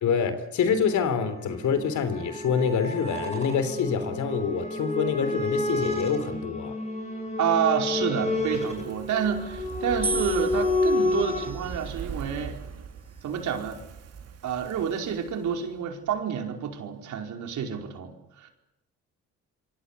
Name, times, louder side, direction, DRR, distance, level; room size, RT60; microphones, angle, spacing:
voice 1, 0.0-6.7, left 6 dB, 70° left, 12 dB, 3.5 m, -26 dB
sound 1, 0.8-11.5, left 2 dB, 20° left, 7.4 m, -30 dB
voice 2, 1.2-1.6 7.4-12.6 13.2-13.8 14.4-18.5, right 8 dB, 75° right, 3 dB, 5.0 m, -29 dB
Fire, 8.5-15.8 16.1-16.2, right 6 dB, 55° right, 2.2 m, -41 dB
sound 2, 10.0-12.2 13.0-13.6, right 3 dB, 20° right, 1.2 m, -36 dB
26.0 x 24.0 x 8.3 m, 0.88 s
cardioid pair, 90°, 30 cm